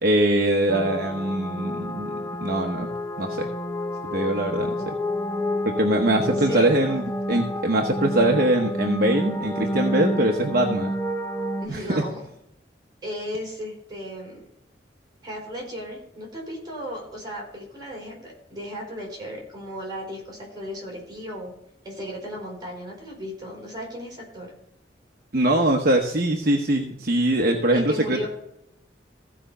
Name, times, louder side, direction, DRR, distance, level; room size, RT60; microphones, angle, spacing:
voice 1, 0.0-2.9 3.2-3.5 4.0-5.0 5.7-7.0 7.3-10.9 11.7-12.0 25.3-28.3, right 1 dB, 55° right, 2 dB, 1.0 m, -22 dB
sound 1, 0.7-11.7, equal, 15° left, 0.7 m, -29 dB
voice 2, 6.2-7.0 11.6-12.2 13.0-14.4 15.2-21.5 21.8-24.5 27.7-28.3, equal, 25° right, -2 dB, 4.8 m, -35 dB
15.0 x 5.1 x 5.5 m, 0.80 s
head